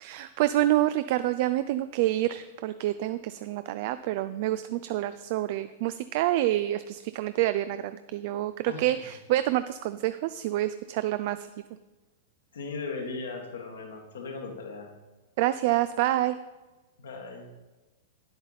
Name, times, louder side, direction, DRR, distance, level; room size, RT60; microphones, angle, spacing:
voice 1, 0.0-11.5 15.4-16.4, right 14 dB, 55° right, 13 dB, 0.3 m, -27 dB
voice 2, 12.5-14.9 17.0-17.5, left 4 dB, 75° left, 2 dB, 1.7 m, -37 dB
9.4 x 7.9 x 4.1 m, 1.1 s
hypercardioid pair, 110°, 0 cm